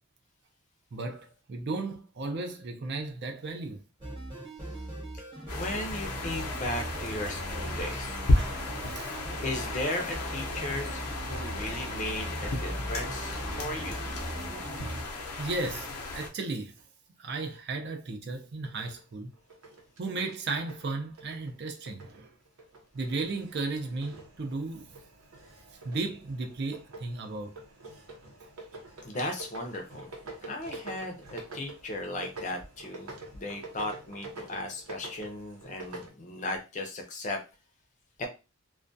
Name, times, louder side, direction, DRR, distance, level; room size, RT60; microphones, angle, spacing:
voice 1, 0.9-3.8 7.9-8.0 8.4-9.2 15.4-16.8 17.2-19.3 20.0-22.3 22.9-25.0 25.8-27.5, right 3 dB, 50° right, 0.4 m, -35 dB
sound 1, 4.0-15.0, right 1 dB, 25° right, 0.9 m, -39 dB
sound 2, 5.5-16.3, left 2 dB, 90° left, 0.6 m, -33 dB
voice 2, 5.5-8.1 9.4-14.0 29.0-30.1 30.4-37.4 38.2-38.3, left 1 dB, 35° left, 0.5 m, -36 dB
sound 3, 18.6-22.2 22.5-36.1, right 2 dB, 80° right, 0.7 m, -47 dB
2.2 x 2.2 x 2.5 m
head